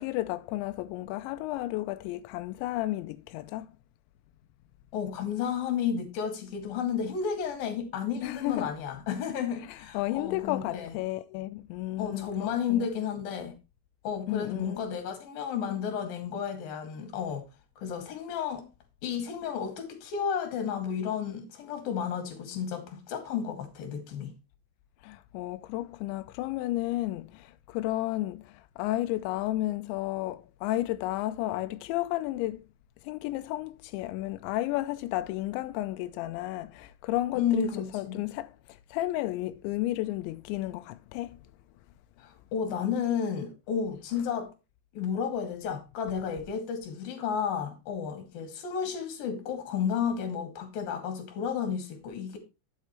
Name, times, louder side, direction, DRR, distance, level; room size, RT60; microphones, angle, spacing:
voice 1, 0.0-3.7 8.2-8.7 9.6-12.9 14.3-14.8 25.0-32.6 33.0-41.4, left 16 dB, 90° left, 2.9 m, -32 dB
voice 2, 4.9-10.9 12.0-13.5 14.0-17.5 17.8-18.6 19.0-24.3 37.4-38.2 42.2-44.5 44.9-52.4, left 7 dB, 60° left, 3.7 m, -32 dB
11.5 x 8.2 x 3.1 m
omnidirectional pair, 5.1 m